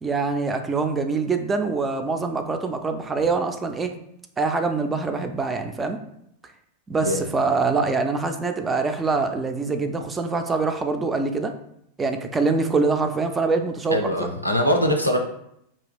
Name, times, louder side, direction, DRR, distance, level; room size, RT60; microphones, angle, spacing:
voice 1, 0.0-3.9 4.4-6.0 6.9-11.5 12.0-14.3, right 4 dB, 15° right, 6 dB, 0.3 m, -24 dB
voice 2, 13.9-15.2, equal, 90° left, 3 dB, 0.4 m, -22 dB
2.5 x 2.2 x 3.4 m, 0.75 s
figure-of-eight pair, 90°, 0 cm